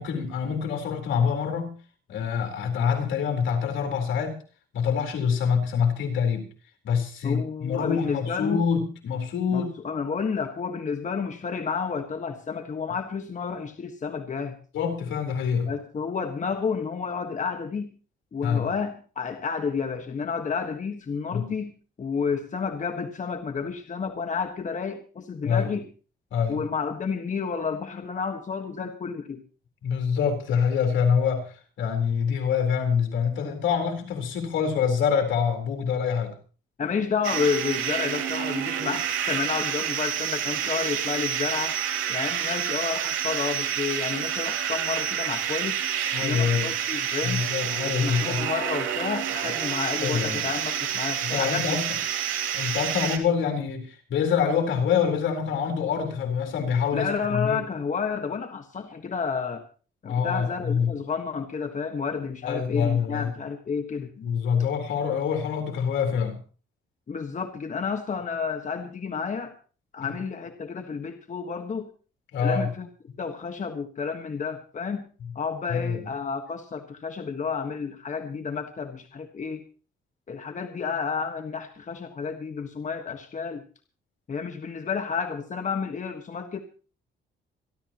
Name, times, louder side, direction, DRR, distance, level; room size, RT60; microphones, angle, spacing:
voice 1, 0.0-1.8 2.1-4.4 4.7-6.5 6.8-9.7 14.7-15.7 18.4-18.7 21.3-21.5 25.4-25.7 26.3-26.7 29.8-36.3 46.1-46.7 47.2-48.5 50.0-50.5 51.3-52.0 52.5-57.6 60.0-60.9 62.4-63.3 64.2-66.4 70.0-70.1 72.3-72.7 75.2-75.3 75.7-76.1, left 7 dB, 75° left, 4.2 m, -26 dB
voice 2, 7.2-8.6 9.5-14.6 15.7-17.9 18.3-21.7 22.0-25.8 26.5-29.4 36.8-41.8 42.1-45.8 46.2-47.4 47.8-51.8 56.9-59.7 60.0-64.1 67.1-69.5 69.9-71.9 72.4-72.9 73.2-75.1 75.3-79.6 80.3-83.6 84.3-86.6, left 5 dB, 40° left, 1.5 m, -30 dB
sound 1, 37.2-53.2, right 9 dB, 85° right, 3.0 m, -28 dB
26.5 x 12.0 x 3.0 m
cardioid pair, 90°, 20 cm